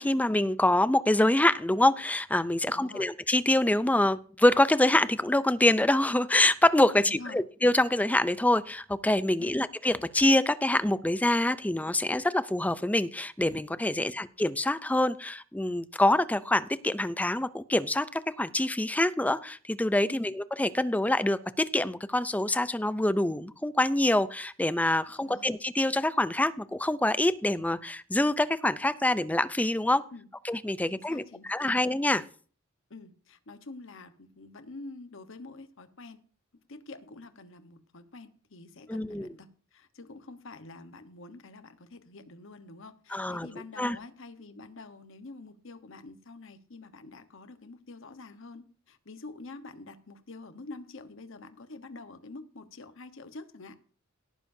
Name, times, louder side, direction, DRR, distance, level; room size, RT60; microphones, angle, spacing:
voice 1, 0.0-30.0 30.4-32.2 38.9-39.3 43.1-43.5 43.8-44.0, left 1 dB, 5° left, 15 dB, 0.5 m, -25 dB
voice 2, 2.7-3.1 7.0-7.4 9.4-9.6 14.0-14.1 20.1-20.3 25.2-25.5 30.1-30.3 30.9-31.7 32.9-36.2 36.7-53.7, left 3 dB, 65° left, 10 dB, 1.2 m, -47 dB
17.5 x 9.7 x 2.7 m, 0.42 s
head